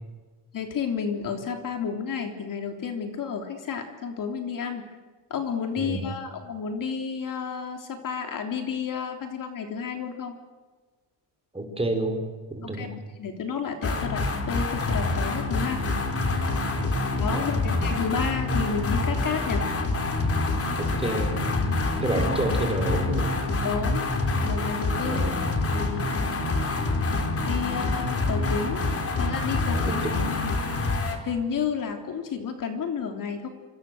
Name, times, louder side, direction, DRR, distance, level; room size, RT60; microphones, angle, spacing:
voice 1, 0.5-4.8 5.3-10.4 12.6-12.9 13.2-15.8 17.2-19.6 23.6-24.1 24.4-25.3 25.7-26.1 27.4-28.8 29.2-30.6 31.2-33.5, left 6 dB, 45° left, 4 dB, 3.5 m, -31 dB
voice 2, 5.8-6.1 11.5-12.2 12.6-12.9 16.7-16.9 17.3-17.4 20.8-21.5 22.0-23.4 25.0-25.5 29.9-30.4, right 2 dB, 15° right, 4 dB, 5.4 m, -29 dB
sound 1, 13.8-31.2, left 2 dB, 30° left, 4.2 m, -26 dB
26.5 x 26.5 x 8.0 m, 1.3 s
cardioid pair, 130°, 43 cm